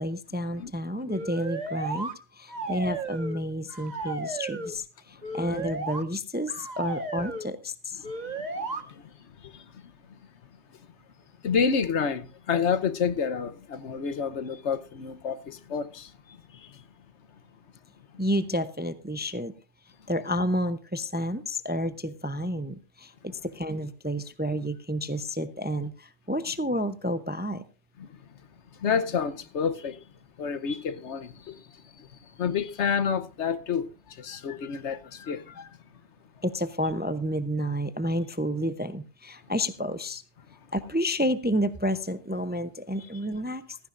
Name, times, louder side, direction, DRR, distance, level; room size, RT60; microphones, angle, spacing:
voice 1, 0.0-8.0 18.2-19.5 20.1-27.6 36.4-40.2 40.7-43.8, equal, 15° right, 0.5 m, -30 dB
sound 1, 1.1-2.1 2.5-3.4 3.7-4.7 5.2-6.0 6.5-7.5 8.0-8.8, right 3 dB, 40° right, 1.5 m, -34 dB
voice 2, 8.0-9.0 9.4-9.6 11.4-16.1 16.5-16.8 28.0-28.1 28.8-30.0 30.4-31.6 32.0-32.1 32.4-35.7, left 6 dB, 80° left, 1.2 m, -29 dB
15.5 x 14.5 x 2.5 m
omnidirectional pair, 1.2 m